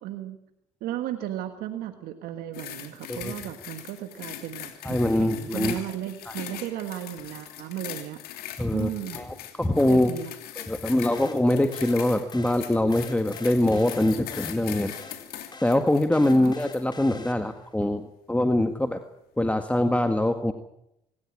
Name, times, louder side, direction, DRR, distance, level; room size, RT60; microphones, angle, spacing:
voice 1, 0.0-0.4 0.8-8.2 8.7-9.2 9.9-10.3 16.3-16.5, right 12 dB, 70° right, 7 dB, 1.6 m, -35 dB
sound 1, 2.5-16.9 17.5-17.7, left 11 dB, 70° left, 2.9 m, -41 dB
voice 2, 4.8-5.8 6.3-6.4 8.6-8.9 9.1-10.1 10.7-14.9 15.6-19.0 19.4-20.5, left 1 dB, 10° left, 6 dB, 1.7 m, -23 dB
sound 2, 11.1-17.7, left 3 dB, 25° left, 3.8 m, -46 dB
25.5 x 13.5 x 8.7 m, 0.83 s
hypercardioid pair, 60°, 16 cm